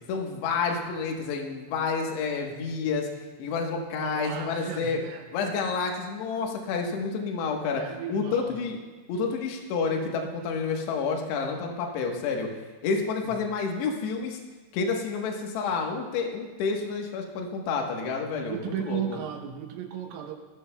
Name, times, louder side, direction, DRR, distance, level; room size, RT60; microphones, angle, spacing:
voice 1, 0.1-3.1 3.4-5.0 5.3-8.8 9.1-12.5 12.8-14.4 14.7-19.2, left 5 dB, 70° left, 1 dB, 3.2 m, -29 dB
voice 2, 3.9-5.3 7.6-8.6 13.2-13.4 18.4-20.3, right 9 dB, 90° right, 2 dB, 3.3 m, -35 dB
20.0 x 16.5 x 2.2 m, 1.3 s
omnidirectional pair, 5.4 m